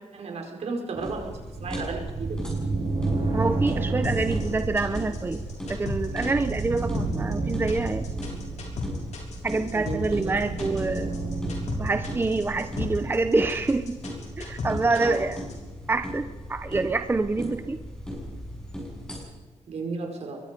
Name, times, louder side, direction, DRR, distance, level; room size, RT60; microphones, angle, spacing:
voice 1, 0.1-2.4 9.7-10.4 14.9-15.3 19.7-20.4, right 4 dB, 65° right, 2 dB, 5.0 m, -34 dB
sound 1, 0.9-19.3, equal, 5° left, 7.1 m, -38 dB
sound 2, 1.6-12.8, right 3 dB, 45° right, 7.2 m, -31 dB
voice 2, 3.3-5.4 5.7-8.0 9.4-11.1 11.8-14.0 14.4-15.4 15.9-17.8, right 3 dB, 20° right, 9 dB, 0.7 m, -26 dB
sound 3, 4.0-15.5, left 4 dB, 90° left, 6.2 m, -35 dB
25.0 x 22.5 x 5.3 m, 1.2 s
wide cardioid pair, 170°, 12 cm